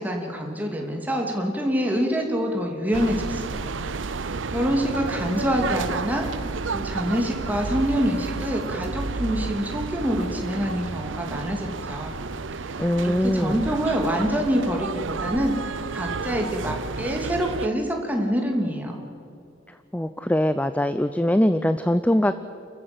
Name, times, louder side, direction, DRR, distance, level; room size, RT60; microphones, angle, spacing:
voice 1, 0.0-3.7 4.1-4.2 4.5-6.3 6.7-12.2 12.7-18.9, equal, 10° right, 1 dB, 2.9 m, -26 dB
sound 1, 2.9-17.7, right 4 dB, 80° right, 0.7 m, -31 dB
voice 2, 12.8-13.6 19.9-22.4, left 1 dB, 10° left, 12 dB, 0.5 m, -22 dB
29.5 x 14.5 x 8.1 m, 2.6 s
head